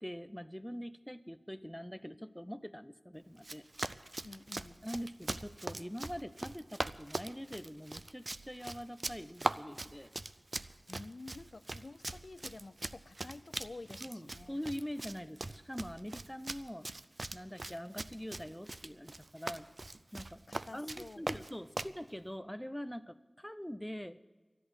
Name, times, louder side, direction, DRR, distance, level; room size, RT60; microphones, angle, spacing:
voice 1, 0.0-3.6 4.8-10.1 14.0-16.9 17.3-19.7 20.1-20.4 20.7-24.2, equal, 5° left, 12 dB, 0.6 m, -43 dB
Run, 3.4-22.0, right 2 dB, 55° right, 0.4 m, -41 dB
voice 2, 4.2-4.8 10.9-14.6 20.5-21.3, left 3 dB, 80° left, 15 dB, 0.4 m, -50 dB
13.0 x 11.0 x 7.9 m, 1.3 s
wide cardioid pair, 55°, 0 cm